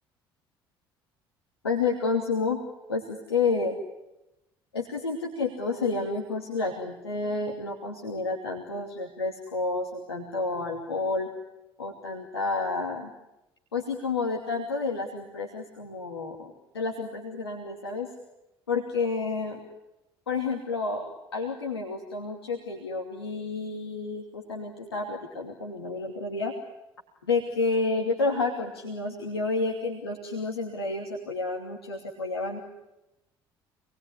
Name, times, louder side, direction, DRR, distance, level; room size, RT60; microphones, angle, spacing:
voice 1, 1.6-2.6 2.9-3.8 4.7-11.3 11.8-13.1 13.7-18.1 18.7-19.6 20.3-26.6 27.2-32.6, left 3 dB, 85° left, 0 dB, 2.7 m, -30 dB
27.5 x 21.0 x 9.9 m, 0.93 s
figure-of-eight pair, 55°, 13 cm